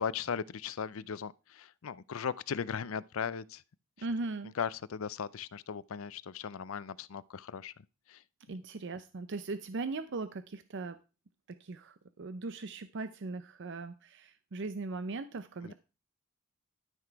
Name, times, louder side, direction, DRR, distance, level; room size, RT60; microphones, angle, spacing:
voice 1, 0.0-3.6 4.6-7.7 8.1-8.2 15.6-15.7, left 6 dB, 75° left, 0.5 m, -37 dB
voice 2, 4.0-4.5 8.5-11.0 11.5-15.7, right 3 dB, 60° right, 0.6 m, -39 dB
12.5 x 6.0 x 4.6 m
head